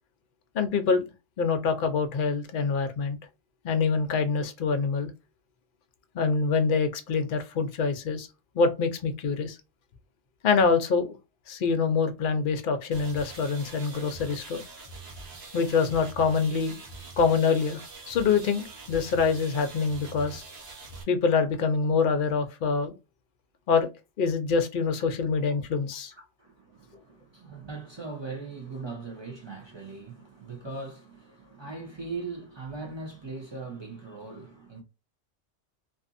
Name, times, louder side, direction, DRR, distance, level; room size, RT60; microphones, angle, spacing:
voice 1, 0.5-1.1 1.4-3.2 3.6-5.1 6.1-8.3 8.6-9.6 10.4-11.2 11.5-14.6 15.5-16.8 17.2-17.8 18.1-20.4 21.1-22.9 23.7-23.9 24.2-26.1, left 5 dB, 60° left, 0.6 m, -25 dB
sound 1, 12.9-21.0, right 3 dB, 60° right, 1.0 m, -44 dB
voice 2, 26.2-34.8, right 3 dB, 30° right, 0.6 m, -40 dB
2.6 x 2.5 x 2.5 m
omnidirectional pair, 1.2 m